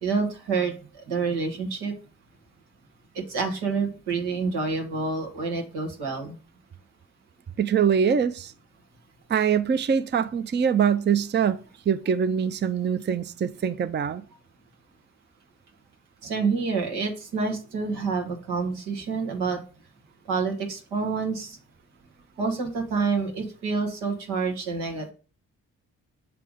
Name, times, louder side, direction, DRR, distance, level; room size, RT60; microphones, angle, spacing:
voice 1, 0.0-1.9 3.1-6.4 16.2-19.6 20.3-21.6 22.4-25.1, right 4 dB, 85° right, 1.5 m, -28 dB
voice 2, 7.6-8.5 9.3-11.6 11.9-14.2, right 7 dB, 30° right, 0.5 m, -23 dB
6.8 x 3.4 x 5.0 m
hypercardioid pair, 40°, 39 cm